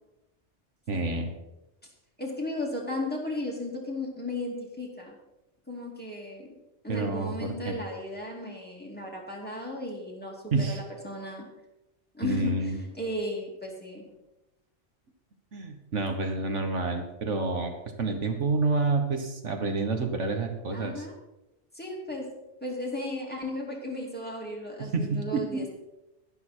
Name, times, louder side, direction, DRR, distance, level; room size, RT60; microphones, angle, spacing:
voice 1, 0.9-1.3 6.9-7.8 10.5-10.8 12.2-12.8 15.5-17.7 18.0-21.1 24.8-25.7, right 3 dB, 85° right, 5 dB, 1.7 m, -28 dB
voice 2, 2.2-5.2 5.7-6.5 6.8-11.5 12.1-14.0 20.7-21.1 21.7-22.3 22.6-25.7, left 1 dB, 10° left, -2 dB, 2.6 m, -35 dB
11.5 x 11.0 x 4.4 m, 0.96 s
omnidirectional pair, 1.2 m